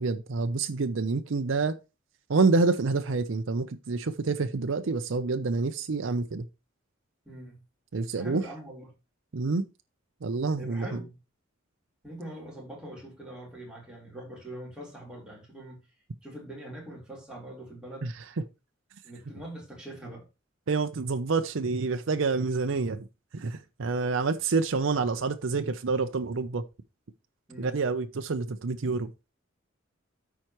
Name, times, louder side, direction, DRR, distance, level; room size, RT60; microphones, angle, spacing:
voice 1, 0.0-1.8 2.3-6.5 7.9-8.4 9.3-9.7 10.2-10.9 18.0-18.2 20.7-23.0 23.3-26.6 27.6-29.1, right 4 dB, 75° right, 0.6 m, -27 dB
voice 2, 7.3-7.6 8.2-8.9 10.6-11.1 12.0-15.8 16.2-18.1 19.0-20.3 27.5-27.7, right 1 dB, 5° right, 3.8 m, -42 dB
13.5 x 4.7 x 3.0 m
head